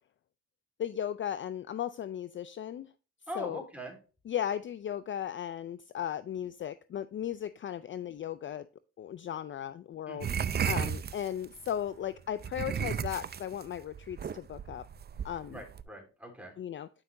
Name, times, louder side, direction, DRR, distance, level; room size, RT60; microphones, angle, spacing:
voice 1, 0.8-2.9 3.4-3.6 4.3-8.7 9.0-10.3 10.7-14.9 15.2-15.6 16.6-16.9, left 10 dB, 40° left, 15 dB, 0.4 m, -36 dB
voice 2, 3.3-4.0 10.1-10.4 15.5-16.6, equal, 5° right, 1 dB, 3.6 m, -42 dB
sound 1, 10.2-11.7 12.4-15.8, right 7 dB, 35° right, 0.5 m, -34 dB
9.9 x 5.8 x 2.7 m, 0.35 s
cardioid pair, 90°, 30 cm